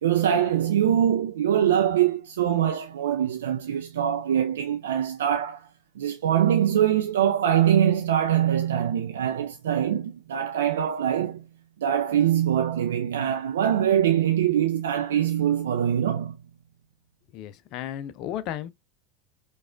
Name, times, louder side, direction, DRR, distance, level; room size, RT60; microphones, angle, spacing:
voice 1, 0.0-5.7 6.0-11.4 11.8-16.4, right 10 dB, 75° right, 0.4 m, -23 dB
voice 2, 17.3-18.7, left 11 dB, 50° left, 0.4 m, -34 dB
4.7 x 2.3 x 2.4 m
hypercardioid pair, 80°, 0 cm